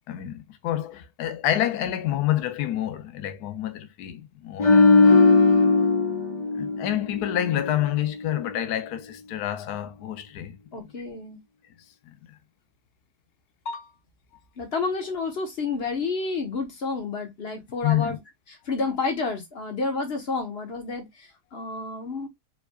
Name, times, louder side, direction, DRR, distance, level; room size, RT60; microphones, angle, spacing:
voice 1, 0.1-5.2 6.5-10.6 12.1-12.3 17.8-18.2, left 12 dB, 75° left, 1.2 m, -28 dB
sound 1, 4.6-7.9 8.2-8.4, left 3 dB, 25° left, 1.1 m, -19 dB
voice 2, 10.7-11.4 13.6-13.9 14.6-18.2 18.6-22.3, left 4 dB, 40° left, 1.5 m, -30 dB
4.6 x 3.8 x 2.4 m
omnidirectional pair, 1.7 m